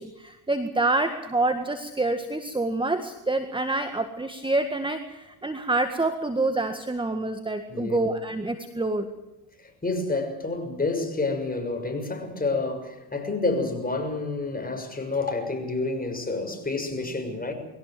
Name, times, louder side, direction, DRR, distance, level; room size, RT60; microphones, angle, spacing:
voice 1, 0.0-9.1, right 2 dB, 10° right, 1.8 m, -27 dB
voice 2, 9.8-17.5, left 3 dB, 15° left, 6.5 m, -29 dB
22.5 x 17.5 x 7.9 m
supercardioid pair, 85°, 49 cm